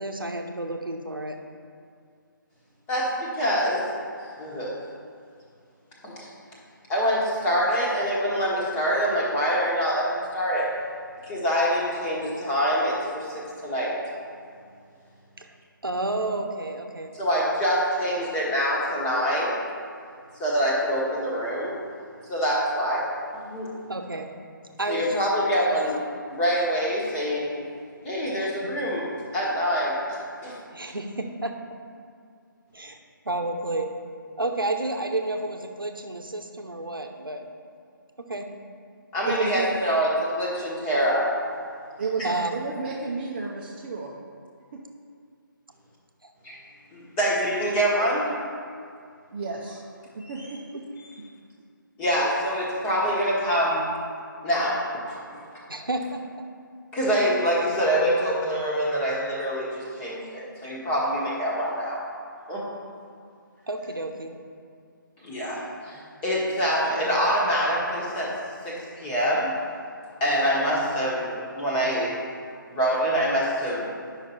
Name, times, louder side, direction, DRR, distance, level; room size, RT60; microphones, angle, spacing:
voice 1, 0.0-1.4 15.4-15.5 15.8-17.1 23.9-24.3 24.8-25.2 25.5-25.8 28.4-28.5 30.7-31.5 32.7-33.0 33.2-33.9 34.4-37.5 38.2-38.5 42.2-42.5 55.7-56.4 63.7-64.3, right 2 dB, 80° right, 4 dB, 0.9 m, -30 dB
voice 2, 2.9-3.8 4.4-4.7 6.0-6.3 6.9-10.7 11.2-13.9 17.1-19.6 20.4-21.7 22.3-23.0 23.3-23.7 24.9-26.0 26.3-27.6 28.0-29.0 29.3-30.6 30.9-31.0 39.1-41.3 46.4-46.5 46.9-48.3 50.2-50.5 52.0-53.9 54.4-55.4 56.9-62.0 62.5-62.6 65.2-68.4 68.6-69.5 70.2-72.1 72.7-73.9, equal, 10° left, -6 dB, 1.3 m, -25 dB
voice 3, 39.2-39.8 42.0-44.1 44.7-44.8 49.3-49.8 50.1-50.8 51.2-51.3, right 4 dB, 30° right, -4 dB, 0.7 m, -32 dB
9.6 x 5.8 x 4.3 m, 2.3 s
figure-of-eight pair, 145°, 11 cm